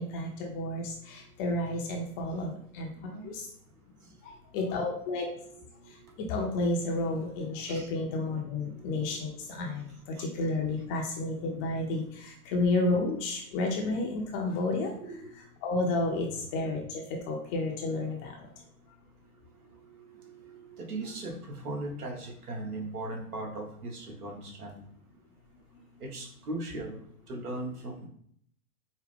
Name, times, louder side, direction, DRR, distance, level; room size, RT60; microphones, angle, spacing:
voice 1, 0.0-2.9 3.2-3.4 4.5-5.3 6.3-14.9 15.6-18.5, left 2 dB, 25° left, 1 dB, 0.5 m, -31 dB
voice 2, 4.8-5.6 6.0-6.1 7.7-7.9 8.7-9.2 10.2-10.3 15.0-15.3 16.2-16.5 19.7-24.8 26.0-27.0 27.3-28.1, right 2 dB, 75° right, 0 dB, 1.4 m, -39 dB
4.8 x 2.1 x 3.5 m, 0.65 s
hypercardioid pair, 115°, 45 cm